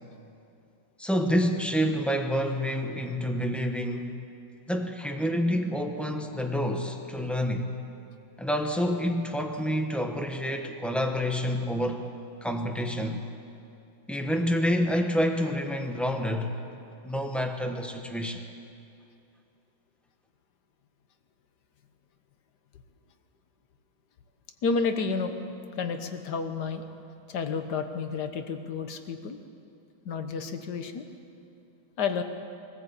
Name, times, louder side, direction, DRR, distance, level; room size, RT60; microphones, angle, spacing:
voice 1, 1.0-4.1 4.7-7.7 8.4-12.1 12.4-13.2 14.1-16.6 17.0-18.4, equal, ahead, 4 dB, 0.7 m, -28 dB
voice 2, 24.6-25.4 25.8-26.8 27.3-29.4 30.0-31.0 32.0-32.2, left 5 dB, 55° left, 8 dB, 1.6 m, -30 dB
22.5 x 14.5 x 8.3 m, 2.7 s
omnidirectional pair, 2.2 m